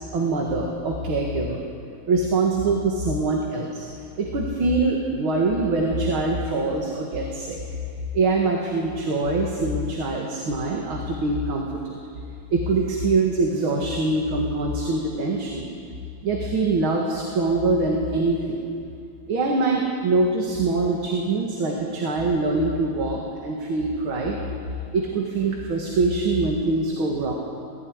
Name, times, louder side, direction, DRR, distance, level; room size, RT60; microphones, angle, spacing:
voice 1, 0.0-1.6 2.1-3.9 4.2-7.6 8.1-12.0 12.5-15.7 16.2-18.6 19.3-24.4 24.9-27.3, right 3 dB, 75° right, -1 dB, 2.7 m, -24 dB
18.0 x 16.0 x 9.6 m, 2.4 s
omnidirectional pair, 2.3 m